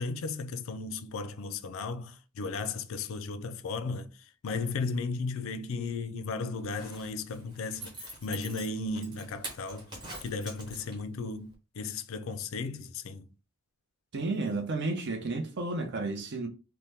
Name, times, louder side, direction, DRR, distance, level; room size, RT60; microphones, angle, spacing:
voice 1, 0.0-4.1 4.4-9.9 10.2-13.3, left 3 dB, 60° left, 0.4 m, -35 dB
Zipper (clothing), 6.6-11.2 11.5-11.6, right 2 dB, 20° right, 1.0 m, -45 dB
voice 2, 14.1-16.5, right 3 dB, 50° right, 0.6 m, -32 dB
2.8 x 2.1 x 3.3 m
head